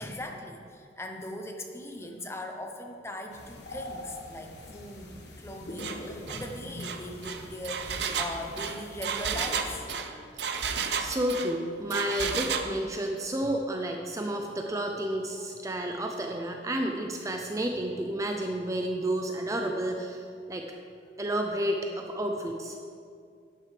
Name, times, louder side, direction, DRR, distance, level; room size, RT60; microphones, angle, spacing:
voice 1, 0.0-10.3 15.4-15.5, left 1 dB, 15° left, 3 dB, 0.8 m, -40 dB
sound 1, 3.3-9.8, left 1 dB, 70° left, 1.4 m, -44 dB
Engine, 5.8-6.0 6.3-6.5 6.8-11.5 11.9-12.7, right 6 dB, 70° right, 0.6 m, -32 dB
voice 2, 11.0-20.7 21.2-22.8, right 1 dB, 20° right, 3 dB, 0.5 m, -31 dB
11.5 x 9.1 x 3.3 m, 2.3 s
head